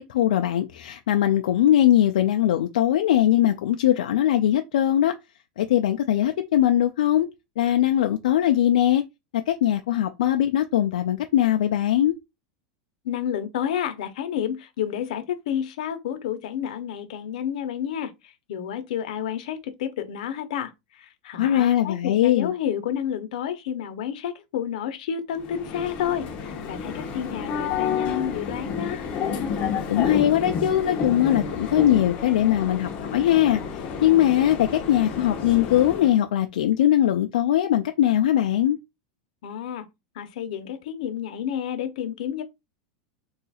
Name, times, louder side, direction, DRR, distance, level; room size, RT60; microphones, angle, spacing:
voice 1, 0.0-5.1 5.6-7.3 7.6-9.0 9.5-12.2 21.4-22.5 29.9-38.8, left 12 dB, 90° left, 0.3 m, -21 dB
voice 2, 13.0-29.0 39.4-39.9 40.1-42.4, left 9 dB, 70° left, 0.7 m, -30 dB
sound 1, 25.4-36.2, left 6 dB, 30° left, 0.6 m, -30 dB
2.7 x 2.3 x 4.1 m
supercardioid pair, 160°, 4 cm